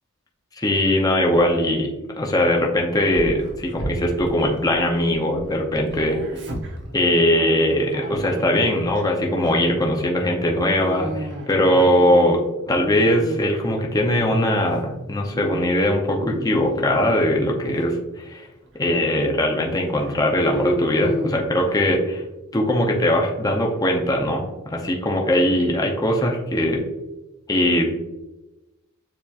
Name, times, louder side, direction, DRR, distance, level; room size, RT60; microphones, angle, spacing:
voice 1, 0.6-1.9 2.2-6.2 6.9-12.4 12.7-18.5 18.8-22.2 22.5-26.8 27.5-27.9, left 1 dB, 15° left, 0 dB, 0.5 m, -20 dB
Dog, 3.1-5.4 5.7-9.0 9.4-9.7 10.5-13.6 14.0-14.8 15.1-15.6 15.9-17.2 17.6-17.8 18.5-18.6 18.9-19.0 19.6-21.9, equal, 55° right, 0.9 m, -32 dB
6.8 x 2.9 x 2.4 m, 1.0 s
head